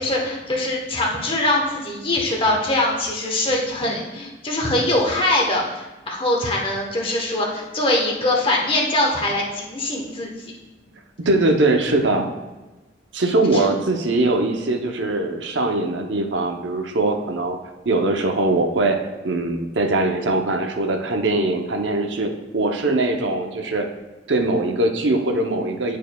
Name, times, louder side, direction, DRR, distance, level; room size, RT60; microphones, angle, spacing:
voice 1, 0.0-10.3 11.9-12.0 13.5-13.7, left 1 dB, 30° left, -1 dB, 1.1 m, -22 dB
voice 2, 11.2-12.3 13.1-17.6 17.9-19.0 19.2-23.9 24.3-26.0, right 2 dB, 85° right, 4 dB, 0.7 m, -21 dB
10.5 x 4.6 x 2.3 m, 1.1 s
head